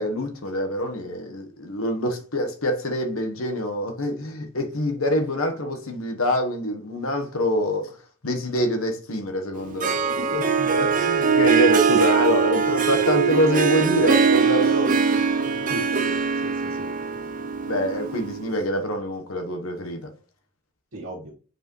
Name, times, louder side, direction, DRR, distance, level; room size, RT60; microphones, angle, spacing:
voice 1, 0.0-7.9 8.2-10.0 10.8-15.2 17.7-20.1, equal, 70° left, 1.2 m, -25 dB
Harp, 9.6-18.5, right 6 dB, 35° right, 0.6 m, -22 dB
voice 2, 10.2-10.7 15.7-16.9 20.9-21.3, left 1 dB, 55° right, 1.7 m, -35 dB
8.0 x 4.8 x 3.1 m
head